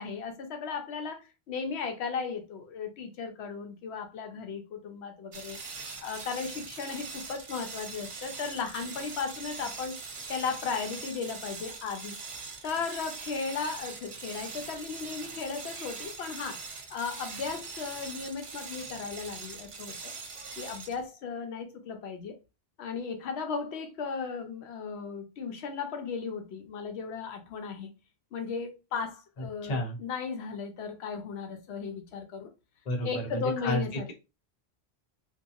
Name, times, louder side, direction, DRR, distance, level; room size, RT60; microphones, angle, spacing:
voice 1, 0.0-5.6 6.0-10.0 10.3-12.2 12.6-20.1 20.6-22.4 22.8-27.9 28.3-32.5 33.0-34.1, left 5 dB, 90° left, 0.9 m, -36 dB
sound 1, 5.3-21.1, right 4 dB, 50° right, 0.4 m, -42 dB
voice 2, 29.4-30.0 32.9-34.1, left 1 dB, 45° left, 0.7 m, -32 dB
2.7 x 2.3 x 2.3 m
omnidirectional pair, 1.1 m